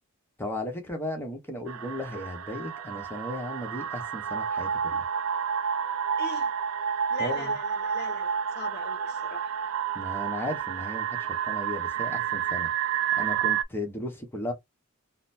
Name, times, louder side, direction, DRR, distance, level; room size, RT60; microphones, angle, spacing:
voice 1, 0.4-5.0 7.2-7.6 9.9-12.7 13.1-14.5, left 1 dB, 10° left, 0.9 m, -35 dB
sound 1, 1.7-13.6, right 8 dB, 70° right, 0.4 m, -30 dB
voice 2, 6.2-6.5 7.1-9.5, left 3 dB, 50° left, 0.7 m, -40 dB
3.8 x 2.1 x 2.5 m
head